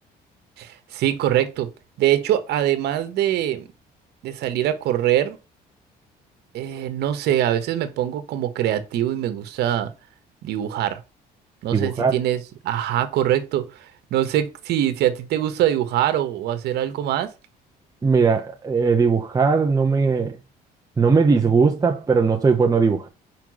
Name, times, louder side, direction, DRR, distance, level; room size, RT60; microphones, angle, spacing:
voice 1, 0.6-1.7 2.0-3.7 4.2-5.4 6.5-9.9 10.4-11.0 11.6-17.3, right 11 dB, 75° right, 1.3 m, -23 dB
voice 2, 11.7-12.1 18.0-20.4 21.0-23.1, right 5 dB, 20° right, 1.0 m, -19 dB
5.1 x 4.5 x 6.2 m
cardioid pair, 110°, 17 cm